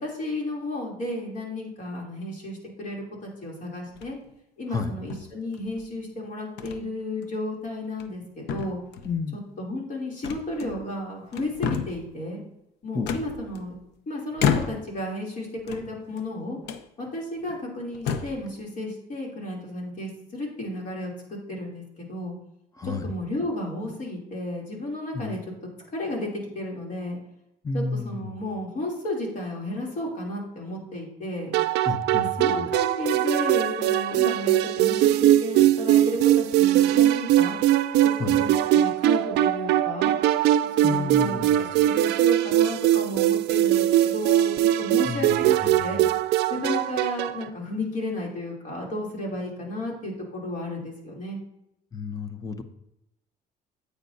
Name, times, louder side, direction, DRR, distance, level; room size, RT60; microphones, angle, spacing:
voice 1, 0.0-4.2 4.6-8.8 9.6-12.4 12.8-13.7 14.1-16.6 17.0-22.3 22.8-25.4 25.9-27.2 27.7-31.5 32.4-37.6 38.2-40.1 40.8-44.5 44.8-46.0 46.5-51.4, left 1 dB, 50° left, -1 dB, 3.0 m, -33 dB
sound 1, 3.9-4.3 5.1-5.8 6.6-6.8 7.2-7.4 7.9-8.2 8.5-9.2 10.2-11.0 11.3-12.1 13.1-13.9 14.4-15.0 15.6-16.3 16.6-16.9 17.5-17.6 17.9-18.5, left 7 dB, 85° left, 0.7 m, -30 dB
voice 2, 9.0-9.4 12.9-13.1 22.8-23.1 25.1-25.4 27.6-28.4 31.8-32.7 38.2-38.4 40.8-41.7 45.0-46.1 51.9-52.6, left 4 dB, 20° left, 9 dB, 0.8 m, -31 dB
sound 2, 31.5-47.5, right 13 dB, 80° right, 0.4 m, -21 dB
9.7 x 8.1 x 2.7 m, 0.84 s
cardioid pair, 110°, 17 cm